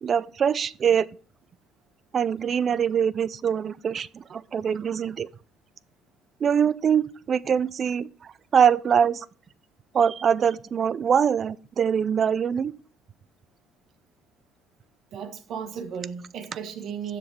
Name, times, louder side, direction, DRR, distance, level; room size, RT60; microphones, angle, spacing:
voice 1, 0.0-1.1 2.1-5.3 6.4-9.3 9.9-12.7, right 7 dB, 45° right, 0.3 m, -23 dB
voice 2, 15.1-17.2, right 7 dB, 65° right, 1.2 m, -35 dB
6.9 x 5.1 x 4.6 m
supercardioid pair, 90°, 0 cm